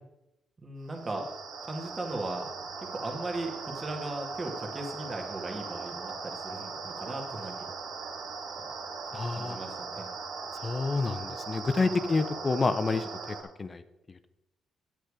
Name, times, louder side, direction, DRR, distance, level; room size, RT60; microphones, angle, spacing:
voice 1, 0.6-1.3 1.6-7.6 9.3-10.1 11.8-12.0, right 2 dB, 30° right, 2 dB, 2.0 m, -37 dB
sound 1, 0.8-13.4, right 4 dB, 75° right, 1.7 m, -39 dB
voice 2, 9.1-9.6 10.6-13.8, left 3 dB, 30° left, 12 dB, 0.7 m, -29 dB
9.3 x 8.1 x 4.9 m, 0.91 s
cardioid pair, 90°, 0 cm